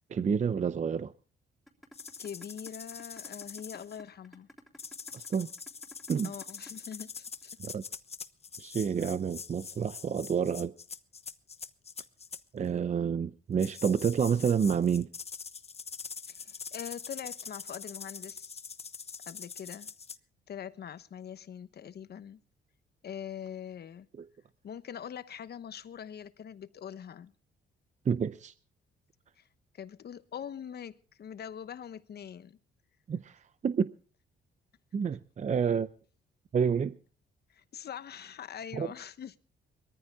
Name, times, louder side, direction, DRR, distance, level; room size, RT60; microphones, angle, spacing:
voice 1, 0.1-1.1 5.1-5.5 6.1-6.3 7.6-7.8 8.6-10.7 12.5-15.1 24.2-24.3 28.1-28.5 33.1-33.9 34.9-35.9 36.5-37.0 38.7-38.9, right 7 dB, 35° right, 0.7 m, -29 dB
sound 1, 1.7-7.7, left 1 dB, ahead, 3.2 m, -53 dB
Large Bamboo Maraca, 1.9-4.0 4.8-12.4 13.6-20.2, left 5 dB, 30° left, 1.0 m, -44 dB
voice 2, 2.2-4.5 6.2-7.5 16.3-18.6 19.3-19.9 20.5-22.4 23.0-24.1 24.6-27.3 29.4-29.5 29.7-32.6 37.5-39.3, left 8 dB, 55° left, 1.1 m, -43 dB
21.5 x 14.0 x 3.6 m
cardioid pair, 90°, 20 cm